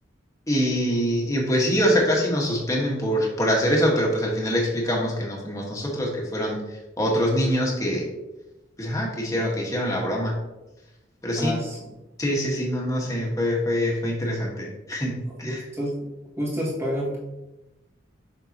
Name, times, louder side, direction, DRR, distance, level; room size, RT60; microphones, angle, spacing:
voice 1, 0.5-6.6 7.0-8.1 8.8-10.3 11.2-11.5 12.2-15.6, equal, 20° left, -2 dB, 1.5 m, -24 dB
voice 2, 11.4-11.9 15.4-16.0 16.4-17.2, equal, 15° right, -5 dB, 1.9 m, -28 dB
6.9 x 5.8 x 2.9 m, 1.0 s
head